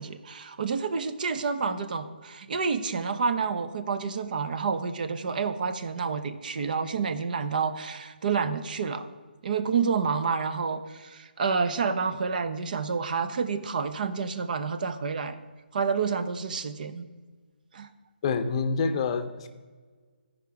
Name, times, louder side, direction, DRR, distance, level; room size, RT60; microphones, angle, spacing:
voice 1, 0.0-9.1 9.4-15.4 15.7-17.1 17.7-17.9, right 5 dB, 55° right, 11 dB, 0.7 m, -29 dB
voice 2, 18.2-19.5, left 5 dB, 35° left, 9 dB, 0.6 m, -27 dB
13.5 x 5.1 x 4.7 m, 1.4 s
hypercardioid pair, 150°, 6 cm